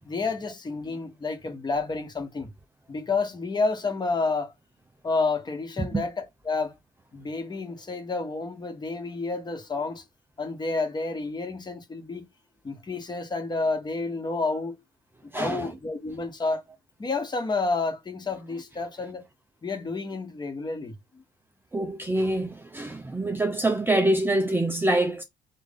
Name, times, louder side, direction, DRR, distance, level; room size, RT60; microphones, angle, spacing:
voice 1, 0.0-2.5 2.9-4.5 5.0-6.7 7.1-10.0 10.4-12.2 12.6-14.8 15.3-16.6 17.0-19.2 19.6-20.9, left 3 dB, 25° left, 1.3 m, -30 dB
voice 2, 15.3-15.7 21.7-25.2, right 1 dB, 10° right, 0.6 m, -25 dB
3.6 x 3.2 x 3.7 m
cardioid pair, 110°, 17 cm